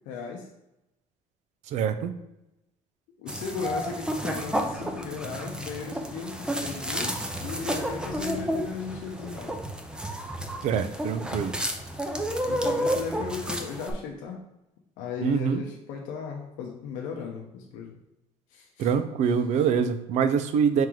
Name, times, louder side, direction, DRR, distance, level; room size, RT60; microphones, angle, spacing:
voice 1, 0.1-0.4 3.2-7.1 7.4-9.6 12.4-14.4 15.0-17.9 18.5-18.9, left 5 dB, 90° left, 0 dB, 0.7 m, -36 dB
voice 2, 1.7-2.1 10.6-11.5 15.2-15.6 18.8-20.9, right 7 dB, 60° right, 10 dB, 0.5 m, -25 dB
sound 1, 3.3-13.9, equal, 5° right, 0.6 m, -31 dB
4.6 x 3.0 x 3.8 m, 0.90 s
cardioid pair, 120°, 13 cm